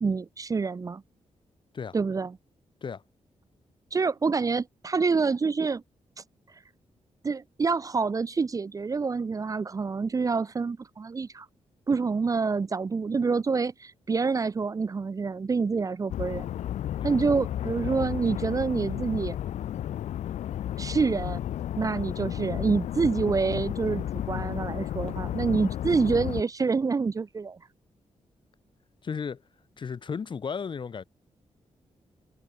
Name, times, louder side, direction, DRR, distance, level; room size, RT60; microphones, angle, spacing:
voice 1, 0.0-1.0 1.9-2.4 3.9-5.8 7.2-11.5 11.9-16.5 17.0-19.4 20.8-21.4 21.8-27.6, right 4 dB, 30° right, 0.9 m, -27 dB
sound 1, 16.1-26.4, left 11 dB, 90° left, 0.5 m, -33 dB
voice 2, 17.0-17.4 29.0-29.4 29.8-31.0, left 6 dB, 45° left, 4.3 m, -34 dB
wide cardioid pair, 160°, 12 cm